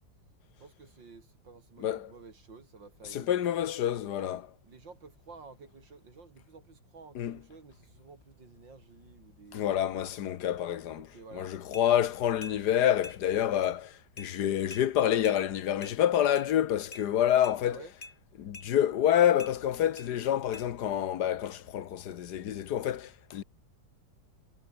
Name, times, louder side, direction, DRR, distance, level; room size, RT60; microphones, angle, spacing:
voice 1, 0.6-3.6 4.6-9.6 10.9-11.5 17.6-17.9, right 4 dB, 85° right, 4.1 m, -52 dB
voice 2, 1.8-2.1 3.1-4.5 7.1-7.4 9.5-11.1 11.3-17.8 18.4-23.4, left 10 dB, 65° left, 1.5 m, -28 dB
sound 1, 11.7-11.9 12.4-12.6 13.0-13.2 13.6-13.7 14.2-14.3 14.7-14.9 15.2-15.4 15.8-16.0 16.4-16.5 16.9-17.1 17.4-17.6 18.0-18.2 18.5-18.7 19.4-19.5 20.0-20.1 20.5-20.7, left 2 dB, 25° left, 3.6 m, -45 dB
omnidirectional pair, 2.0 m